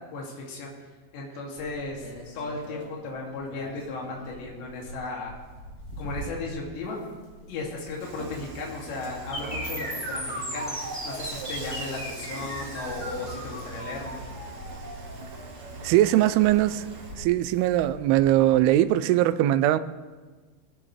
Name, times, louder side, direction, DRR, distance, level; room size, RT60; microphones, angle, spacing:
voice 1, 0.1-0.7 1.1-5.3 6.0-7.0 7.5-10.7 11.0-14.2, left 3 dB, 75° left, 4.7 m, -35 dB
sound 1, 1.6-18.8, equal, 40° left, 3.4 m, -45 dB
Dishes pots and pans / Frying (food), 8.0-17.2, right 3 dB, 50° right, 2.7 m, -42 dB
sound 2, 9.3-17.3, equal, 5° left, 1.8 m, -36 dB
voice 2, 15.8-16.9 17.2-19.8, right 14 dB, 90° right, 2.2 m, -21 dB
20.5 x 16.5 x 3.3 m
omnidirectional pair, 5.1 m